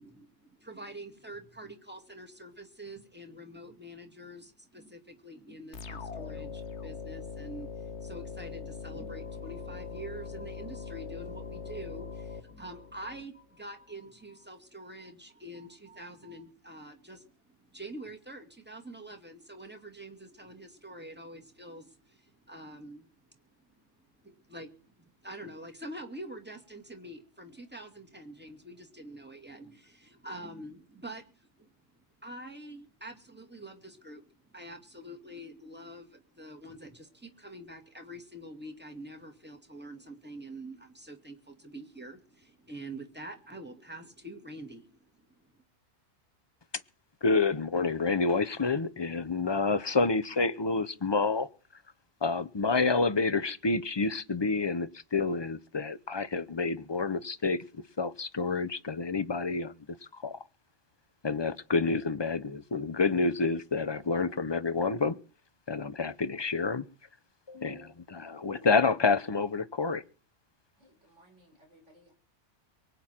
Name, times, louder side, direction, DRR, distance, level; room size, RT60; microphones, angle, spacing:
voice 1, 0.0-17.3 17.7-23.1 24.2-31.3 31.6-31.7 32.2-45.3, right 1 dB, 10° right, 2.2 m, -46 dB
sound 1, 5.7-13.2, left 5 dB, 65° left, 1.4 m, -41 dB
voice 2, 47.2-51.5 52.2-59.7 60.1-60.4 61.2-65.2 65.7-66.8 67.5-70.0, left 4 dB, 25° left, 0.6 m, -28 dB
voice 3, 70.8-72.1, right 1 dB, 70° right, 5.6 m, -61 dB
24.0 x 9.3 x 4.4 m
omnidirectional pair, 1.3 m